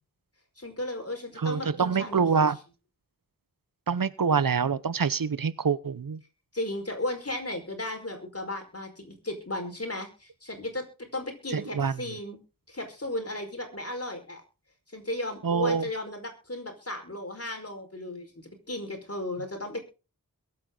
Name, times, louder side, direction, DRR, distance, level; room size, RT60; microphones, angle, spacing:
voice 1, 0.6-2.5 6.5-12.4 12.7-14.4 14.9-19.8, left 1 dB, 40° left, 5 dB, 4.9 m, -35 dB
voice 2, 1.4-2.6 3.9-6.2 11.5-11.9 15.4-15.8, right 6 dB, 70° right, 17 dB, 0.9 m, -25 dB
22.5 x 8.6 x 3.9 m, 0.33 s
wide cardioid pair, 70°, 35 cm